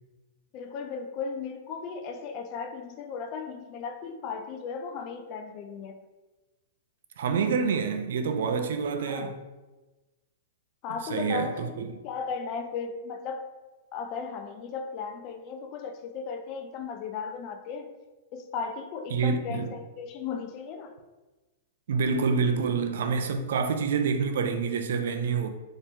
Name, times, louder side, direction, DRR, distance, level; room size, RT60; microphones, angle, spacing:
voice 1, 0.5-6.0 9.0-9.4 10.8-11.8 12.0-13.5 13.9-17.9 18.3-21.0, left 5 dB, 40° left, 0.4 m, -36 dB
voice 2, 7.2-9.4 11.1-11.9 19.1-19.7 21.9-25.5, right 5 dB, 75° right, 0.4 m, -27 dB
3.3 x 2.9 x 2.7 m
hypercardioid pair, 135°, 0 cm